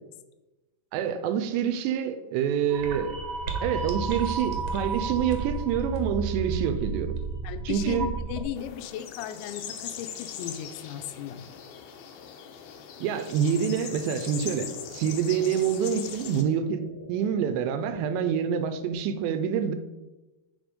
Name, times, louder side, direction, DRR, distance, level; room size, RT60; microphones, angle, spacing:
voice 1, 0.9-3.1 3.6-7.2 7.7-8.1 13.0-16.8 17.1-19.7, right 8 dB, 85° right, 2.8 m, -27 dB
sound 1, 2.7-8.4, right 4 dB, 65° right, 1.6 m, -32 dB
voice 2, 7.4-11.4, left 10 dB, 90° left, 3.0 m, -36 dB
sound 2, 8.6-16.4, left 8 dB, 75° left, 2.5 m, -41 dB
sound 3, 13.4-18.9, left 2 dB, 45° left, 2.0 m, -47 dB
8.9 x 5.5 x 5.2 m
omnidirectional pair, 5.1 m